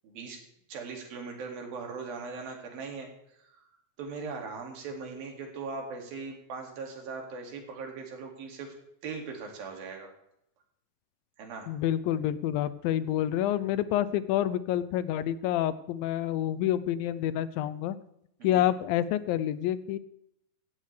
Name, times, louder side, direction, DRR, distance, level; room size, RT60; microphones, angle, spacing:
voice 1, 0.0-0.4 0.7-3.1 3.4-3.6 4.0-8.7 9.0-10.1 11.4-11.7 18.4-18.7, right 4 dB, 85° right, 2 dB, 4.2 m, -39 dB
voice 2, 11.7-18.0 18.4-20.0, left 12 dB, 85° left, 15 dB, 2.5 m, -28 dB
16.0 x 15.0 x 3.4 m, 0.77 s
omnidirectional pair, 4.1 m